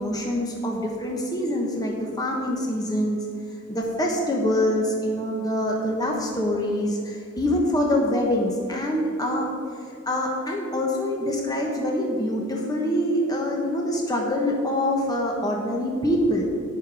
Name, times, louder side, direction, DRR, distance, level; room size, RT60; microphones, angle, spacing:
voice 1, 0.0-3.3 3.7-9.5 10.1-16.5, left 1 dB, 20° left, -1 dB, 1.2 m, -25 dB
11.0 x 9.8 x 4.9 m, 2.5 s
head